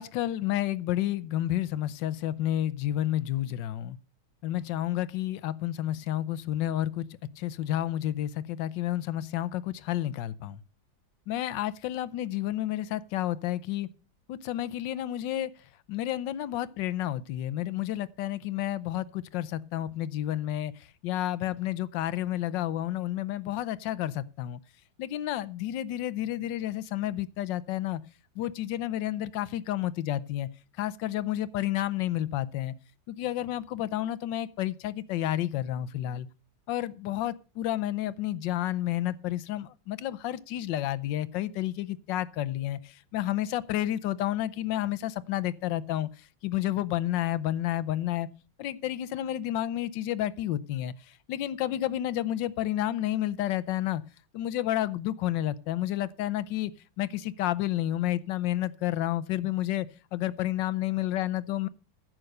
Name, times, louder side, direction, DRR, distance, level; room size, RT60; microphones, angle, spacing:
voice 1, 0.0-4.0 4.4-7.0 7.4-10.6 11.3-13.9 14.3-15.5 15.9-20.7 21.0-24.6 25.0-28.0 28.4-30.5 30.8-32.7 33.1-36.3 36.7-46.1 46.4-48.3 48.6-50.9 51.3-54.0 54.3-56.7 57.0-59.9 60.1-61.7, left 13 dB, 75° left, 16 dB, 1.4 m, -30 dB
11.0 x 7.7 x 6.6 m, 0.36 s
omnidirectional pair, 2.1 m